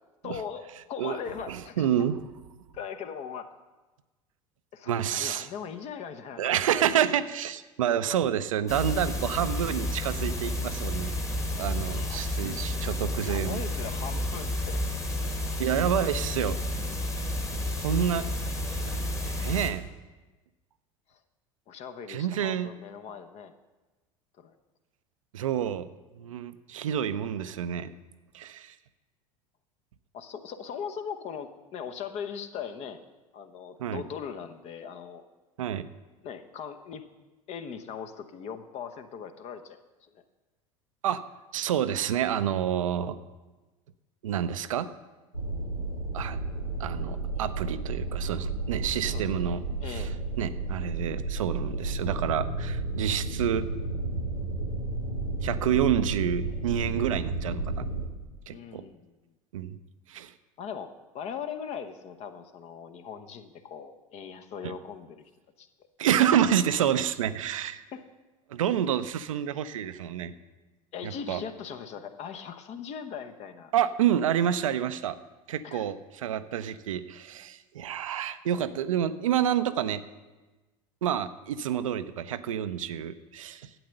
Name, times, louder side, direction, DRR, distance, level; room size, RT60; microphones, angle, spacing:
voice 1, 0.2-1.9 2.7-3.5 4.7-6.6 11.9-12.6 13.2-14.8 17.8-18.0 21.7-23.5 24.4-24.6 30.1-33.0 33.3-35.2 36.2-37.0 37.5-39.8 49.1-49.5 49.8-50.1 58.5-59.1 60.6-65.3 65.6-65.7 67.9-68.0 70.9-73.7 75.6-75.9, left 7 dB, 35° left, 9 dB, 0.9 m, -39 dB
voice 2, 1.5-2.2 4.9-5.5 6.4-11.1 11.6-13.6 15.6-16.6 17.8-18.3 18.8-19.9 22.1-22.7 25.3-25.9 26.2-27.9 28.3-28.7 33.8-34.0 35.6-35.9 41.0-41.2 41.5-43.2 44.2-44.9 46.1-46.4 46.8-50.1 50.4-53.7 55.4-57.9 58.5-58.8 59.5-59.8 60.1-60.3 64.6-64.7 66.0-67.8 68.5-70.3 71.0-71.4 73.7-75.2 75.5-80.0 81.0-83.7, right 10 dB, 65° right, 12 dB, 0.6 m, -28 dB
sound 1, 8.7-19.7, left 1 dB, 15° left, 1.6 m, -31 dB
sound 2, 45.3-58.1, right 2 dB, 90° left, 1.4 m, -32 dB
12.0 x 8.6 x 6.6 m, 1.2 s
figure-of-eight pair, 75°, 18 cm